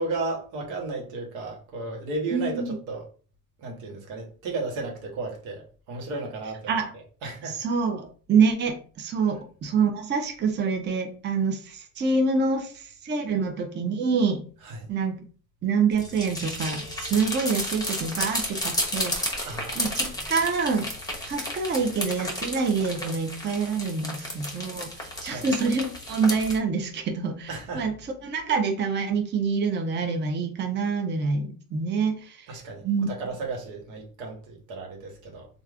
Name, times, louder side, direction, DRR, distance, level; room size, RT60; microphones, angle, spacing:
voice 1, 0.0-3.1 3.6-7.6 14.6-14.9 19.4-20.3 25.2-25.5 27.5-27.8 32.5-35.5, right 3 dB, 90° right, 1.1 m, -34 dB
voice 2, 2.3-2.8 6.7-6.9 7.4-14.4 14.9-15.2 15.6-19.5 19.8-20.9 21.3-27.9 28.2-32.5 32.8-33.1, right 5 dB, 25° right, 0.6 m, -26 dB
sound 1, 15.9-26.6, left 1 dB, 10° left, 0.8 m, -32 dB
3.1 x 2.4 x 2.4 m
supercardioid pair, 90°, 40 cm